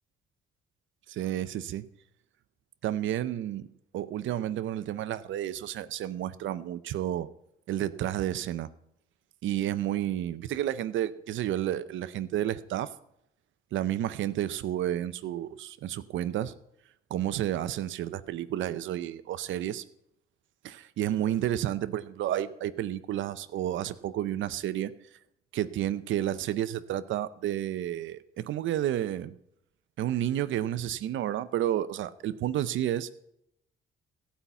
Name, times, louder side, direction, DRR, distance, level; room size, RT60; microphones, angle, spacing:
voice 1, 1.1-1.9 2.8-3.7 3.9-7.3 7.7-8.7 9.4-12.9 13.7-16.5 17.1-19.8 20.6-24.9 25.5-29.3 30.0-33.1, right 12 dB, 75° right, 14 dB, 0.6 m, -31 dB
15.0 x 5.7 x 8.1 m, 0.77 s
cardioid pair, 90°, 20 cm